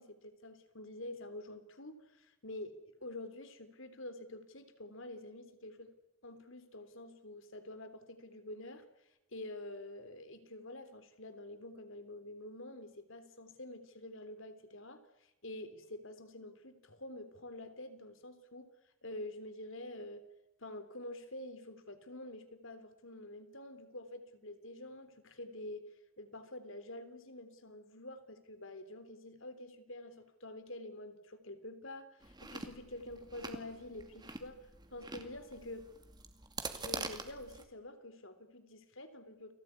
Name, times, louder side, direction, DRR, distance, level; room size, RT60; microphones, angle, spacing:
voice 1, 0.0-5.9 6.2-8.9 9.3-20.2 20.6-25.8 26.2-35.9 36.7-39.5, left 1 dB, 65° left, 10 dB, 3.5 m, -48 dB
Chewing mastication, 32.2-37.6, right 3 dB, 20° right, 2.4 m, -45 dB
29.5 x 20.0 x 9.8 m, 0.93 s
head